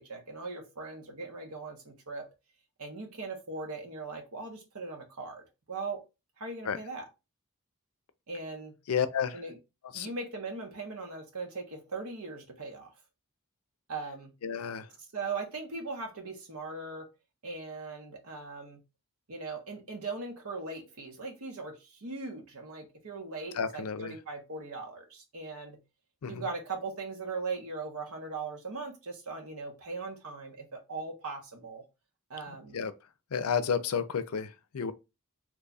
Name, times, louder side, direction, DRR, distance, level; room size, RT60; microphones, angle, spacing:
voice 1, 0.0-2.3 2.8-6.0 6.4-7.1 8.3-8.7 9.3-9.6 9.9-12.9 13.9-14.3 15.1-17.1 17.4-18.8 19.3-25.8 26.3-31.8 32.3-32.8, right 3 dB, 85° right, 1.1 m, -39 dB
voice 2, 8.9-9.4 9.9-10.1 14.4-14.9 23.6-24.1 26.2-26.4 32.7-32.9 33.3-34.9, left 6 dB, 85° left, 0.5 m, -31 dB
3.1 x 2.3 x 3.9 m
head